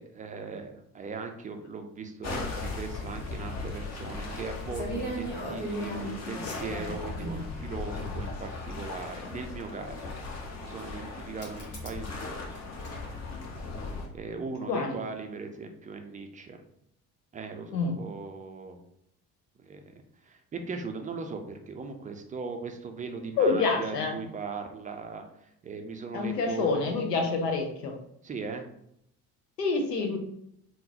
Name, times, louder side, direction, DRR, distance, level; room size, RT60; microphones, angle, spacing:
voice 1, 0.0-10.1 10.6-12.5 14.1-16.6 17.3-18.8 19.6-19.9 20.2-25.2 25.6-27.0 28.2-28.7, right 4 dB, 20° right, 5 dB, 0.3 m, -39 dB
sound 1, 2.2-14.1, left 3 dB, 35° left, 0.8 m, -38 dB
sound 2, 4.7-7.4 8.5-8.6 11.4-12.0 12.3-13.2, right 1 dB, 65° left, 1.3 m, -37 dB
voice 2, 14.7-15.0 17.7-18.0 23.4-24.2 26.1-28.0 29.6-30.2, left 4 dB, 85° left, 3 dB, 0.6 m, -27 dB
3.6 x 2.1 x 2.7 m, 0.73 s
figure-of-eight pair, 45°, 47 cm